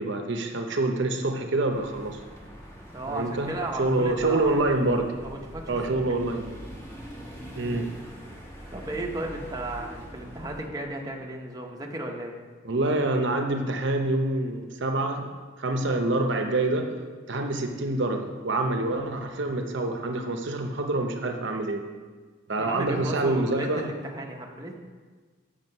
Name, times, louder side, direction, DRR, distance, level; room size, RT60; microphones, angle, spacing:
voice 1, 0.0-2.2 3.1-3.5 3.8-5.1 5.7-6.5 7.6-7.9 12.6-15.3 15.6-16.9 17.3-21.8 22.5-23.9, right 2 dB, 65° right, 5 dB, 0.7 m, -26 dB
sound 1, 1.7-10.7, equal, 15° left, 1.4 m, -43 dB
voice 2, 2.9-4.6 5.2-5.8 6.0-6.1 8.7-12.3 22.6-24.8, right 1 dB, 20° right, 0 dB, 0.8 m, -34 dB
7.6 x 6.5 x 5.3 m, 1.4 s
head